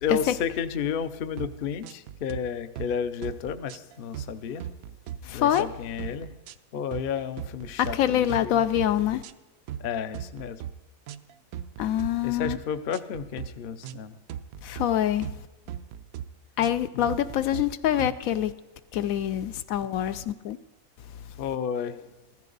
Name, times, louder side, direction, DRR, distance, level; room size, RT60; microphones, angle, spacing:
voice 1, 0.0-4.6 5.3-6.3 6.7-8.6 9.8-10.6 12.2-14.2 16.9-17.1 21.4-22.0, left 7 dB, 55° left, 0.7 m, -32 dB
sound 1, 1.4-1.6 1.8-2.4 2.8-2.9 3.2-4.3 4.6-5.2 5.5-5.7 6.0-6.5 6.9-7.1 7.4-7.9 8.3-8.5 8.8-9.3 9.7-9.9 10.1-10.7 11.1-12.1 12.4-12.6 12.9-13.5 13.8-14.0 14.3-14.9 15.2-15.4 15.7-16.3 16.6-16.8 17.1-17.6 18.0-18.2, right 10 dB, 90° right, 1.1 m, -37 dB
voice 2, 5.2-5.7 7.8-9.2 11.8-12.6 14.6-15.4 16.6-18.5 18.9-20.6, left 11 dB, 75° left, 1.0 m, -25 dB
15.5 x 13.5 x 3.9 m
omnidirectional pair, 1.5 m